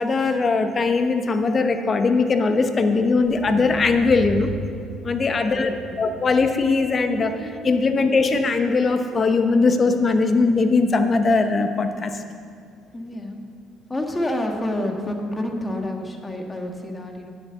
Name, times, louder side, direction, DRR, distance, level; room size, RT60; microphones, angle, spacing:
voice 1, 0.0-4.5 5.0-5.7 6.0-12.2, left 4 dB, 40° left, 7 dB, 1.0 m, -20 dB
sound 1, 2.5-8.8, right 2 dB, 60° right, 0.9 m, -37 dB
voice 2, 5.3-5.9 12.9-13.4 13.9-17.3, left 1 dB, 20° left, 2 dB, 1.6 m, -29 dB
9.8 x 7.5 x 6.8 m, 2.2 s
supercardioid pair, 70°, 0 cm